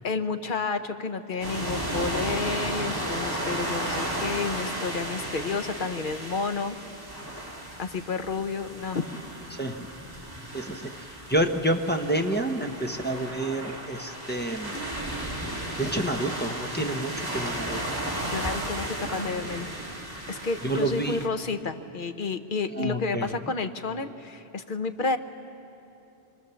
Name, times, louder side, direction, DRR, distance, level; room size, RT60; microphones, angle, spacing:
voice 1, 0.0-6.8 7.8-9.0 18.3-19.7 20.3-25.2, left 4 dB, 55° left, 7 dB, 1.0 m, -30 dB
sound 1, 1.4-21.3, right 1 dB, 20° right, 2.5 m, -34 dB
voice 2, 9.5-9.9 10.5-14.8 15.8-17.8 20.6-21.2 22.7-23.4, right 1 dB, 10° left, 2 dB, 1.0 m, -29 dB
Splash splatter, 14.7-15.3 16.7-17.9 19.1-19.8 20.4-20.5, right 1 dB, 75° right, 5.2 m, -42 dB
26.5 x 22.5 x 7.1 m, 2.9 s
omnidirectional pair, 1.1 m